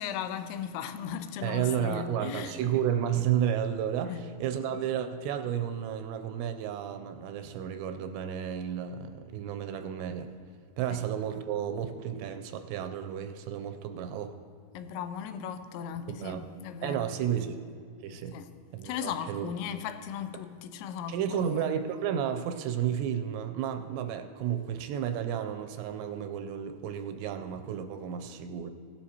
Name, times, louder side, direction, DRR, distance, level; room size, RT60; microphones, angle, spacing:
voice 1, 0.0-2.6 4.0-4.2 4.7-4.8 10.9-11.0 14.7-17.1 18.3-18.5 18.8-21.7, left 8 dB, 85° left, 2.9 m, -37 dB
voice 2, 1.4-10.3 10.8-14.3 16.1-16.4 16.8-17.6 18.0-18.4 18.7-19.5 21.1-28.7, right 9 dB, 85° right, 2.6 m, -32 dB
17.0 x 11.5 x 2.8 m
omnidirectional pair, 5.2 m